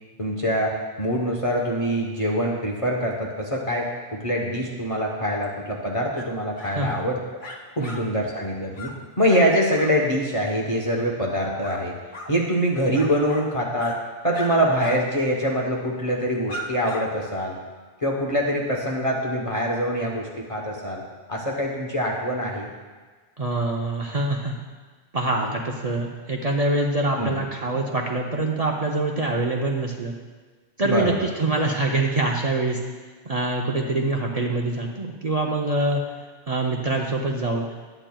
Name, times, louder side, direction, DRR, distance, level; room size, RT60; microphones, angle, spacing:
voice 1, 0.2-7.2 7.8-8.9 9.2-11.9 12.3-14.0 14.2-17.6 18.0-21.0 21.3-22.7 27.2-27.4 30.8-31.1, equal, 35° left, -2 dB, 0.9 m, -24 dB
sound 1, 6.2-6.3 6.5-7.0 7.4-8.0 8.3-8.5 8.7-8.9 9.3-9.5 9.7-9.9 11.3-11.8 12.1-12.3 12.9-13.5 13.8-14.0 14.3-14.5 14.8-15.0 15.3-15.4 16.1-16.2 16.5-17.0, equal, 50° left, 1.3 m, -37 dB
voice 2, 23.4-24.5 25.1-30.1 30.8-32.8 33.3-36.0 36.5-37.7, right 2 dB, 45° right, -1 dB, 0.6 m, -25 dB
12.0 x 8.9 x 2.2 m, 1.4 s
omnidirectional pair, 1.1 m